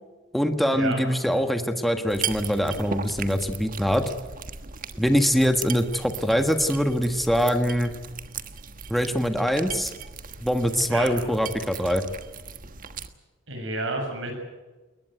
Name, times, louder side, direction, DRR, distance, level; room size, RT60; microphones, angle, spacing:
voice 1, 0.3-4.1 5.0-7.9 8.9-9.9 10.4-12.0, equal, ahead, 6 dB, 1.5 m, -23 dB
sound 1, 2.1-13.1, right 7 dB, 45° right, 1.4 m, -37 dB
voice 2, 10.8-11.1 13.5-14.3, right 2 dB, 70° right, 4 dB, 7.3 m, -30 dB
21.0 x 20.5 x 9.2 m, 1.2 s
head